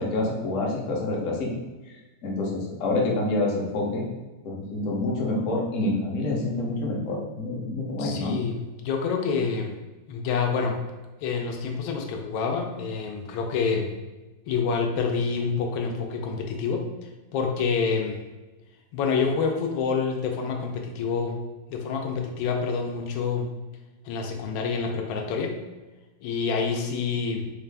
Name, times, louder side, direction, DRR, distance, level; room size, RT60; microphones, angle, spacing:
voice 1, 0.0-1.5 2.2-4.0 4.4-8.3, left 2 dB, 60° left, -2 dB, 0.8 m, -27 dB
voice 2, 8.0-9.8 10.1-10.8 11.2-13.9 14.5-16.9 17.3-18.2 18.9-21.4 21.7-23.5 24.0-25.6 26.2-27.5, left 5 dB, 80° left, 2 dB, 1.3 m, -27 dB
4.5 x 2.4 x 3.3 m, 1.2 s
omnidirectional pair, 2.2 m